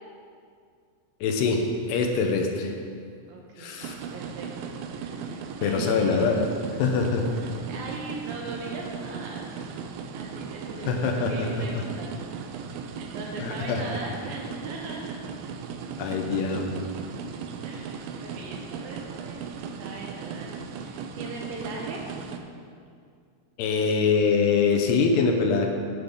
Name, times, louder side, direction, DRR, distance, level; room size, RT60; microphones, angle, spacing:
voice 1, 1.2-2.7 3.6-4.0 5.6-6.4 6.8-7.3 10.9-11.5 13.4-13.8 16.0-16.8 23.6-25.7, left 5 dB, 85° left, 3 dB, 2.9 m, -24 dB
voice 2, 3.3-3.8 4.1-6.5 7.3-12.4 12.7-15.2 17.6-19.4 19.8-22.1, right 2 dB, 70° right, -1 dB, 2.6 m, -40 dB
sound 1, 3.8-22.4, right 6 dB, 85° right, 2.0 m, -37 dB
8.6 x 7.9 x 5.2 m, 2.3 s
omnidirectional pair, 4.8 m